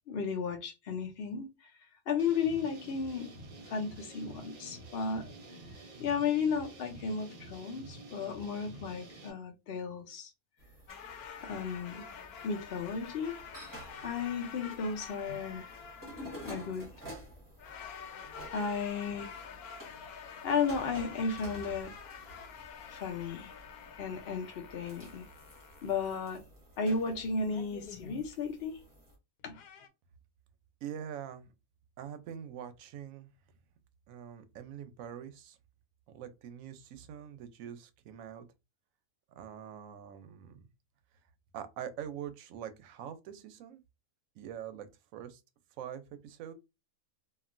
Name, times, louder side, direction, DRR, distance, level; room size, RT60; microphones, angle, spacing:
voice 1, 0.1-1.5 2.1-3.3 3.7-5.3 6.0-10.3 11.4-12.0 12.4-13.4 14.0-15.7 16.3-16.9 18.5-19.3 20.4-21.9 22.9-23.5 24.0-25.2 25.8-26.4 26.8-28.8 29.4-29.5, left 5 dB, 55° left, 0.8 m, -34 dB
sound 1, 2.2-9.3, right 1 dB, 50° right, 0.5 m, -49 dB
sound 2, 10.6-29.1, right 1 dB, 15° right, 0.8 m, -51 dB
sound 3, 10.9-17.3 17.6-26.3 27.5-28.2 29.4-29.9, left 7 dB, 90° left, 1.1 m, -48 dB
voice 2, 30.8-31.5 32.0-33.3 34.1-35.6 36.1-38.4 39.4-40.7 41.5-43.8 44.4-44.9 45.1-45.4 45.8-46.5, right 9 dB, 70° right, 0.9 m, -44 dB
2.9 x 2.4 x 2.5 m
omnidirectional pair, 1.5 m